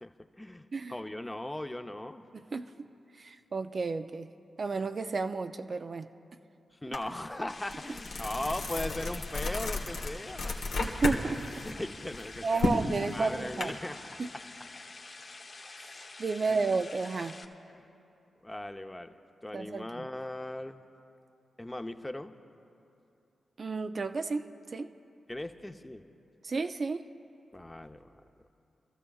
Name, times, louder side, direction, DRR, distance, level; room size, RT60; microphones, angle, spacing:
voice 1, 0.0-2.2 6.8-10.5 11.6-12.9 13.1-14.0 16.5-16.8 17.7-17.9 18.4-20.8 21.6-22.3 25.3-26.0 27.5-28.1, left 1 dB, 15° left, 7 dB, 0.7 m, -39 dB
voice 2, 2.3-2.7 3.2-4.3 4.6-6.1 10.8-11.6 12.4-13.7 14.2-14.3 16.0-17.4 19.5-20.1 23.6-24.9 26.4-27.0, right 4 dB, 55° right, 8 dB, 0.4 m, -32 dB
sound 1, 6.9-7.1 7.5-11.2 11.6-13.6, left 3 dB, 80° left, 1.2 m, -32 dB
water fountain SF, 7.5-17.4, left 3 dB, 50° left, 0.9 m, -47 dB
26.5 x 13.5 x 2.4 m, 2.7 s
supercardioid pair, 40°, 0 cm